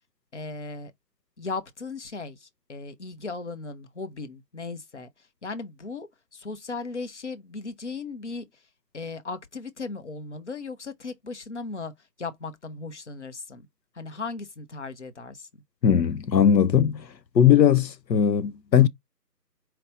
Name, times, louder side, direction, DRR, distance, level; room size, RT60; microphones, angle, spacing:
voice 1, 0.3-0.9 1.4-8.6 8.9-11.9 12.2-13.7 13.9-15.5, left 3 dB, 45° left, 0.7 m, -37 dB
voice 2, 15.8-17.1 17.3-18.9, left 9 dB, 85° left, 0.7 m, -19 dB
4.5 x 2.5 x 3.8 m
figure-of-eight pair, 160°, 49 cm